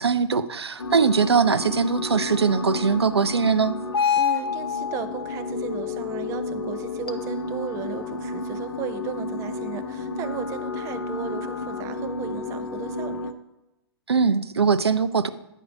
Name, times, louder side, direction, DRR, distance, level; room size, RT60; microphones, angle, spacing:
voice 1, 0.0-3.8 14.1-15.3, right 5 dB, 75° right, 13 dB, 0.5 m, -21 dB
sound 1, 0.8-13.3, left 5 dB, 70° left, 0.7 m, -30 dB
voice 2, 4.1-13.3, right 9 dB, 20° right, 11 dB, 0.5 m, -35 dB
9.8 x 4.6 x 5.9 m, 0.92 s
figure-of-eight pair, 115°, 14 cm